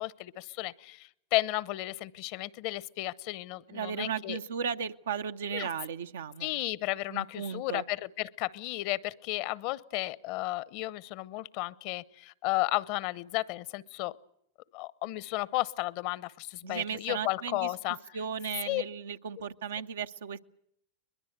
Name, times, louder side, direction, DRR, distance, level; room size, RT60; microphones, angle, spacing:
voice 1, 0.0-4.4 5.5-5.7 6.4-14.2 14.7-18.0 18.6-18.8, left 18 dB, 55° left, 20 dB, 0.8 m, -33 dB
voice 2, 3.7-6.5 7.1-7.8 16.6-17.7 18.1-20.4, right 7 dB, 80° right, 9 dB, 0.9 m, -35 dB
22.0 x 21.5 x 8.0 m, 0.75 s
hypercardioid pair, 105°, 0 cm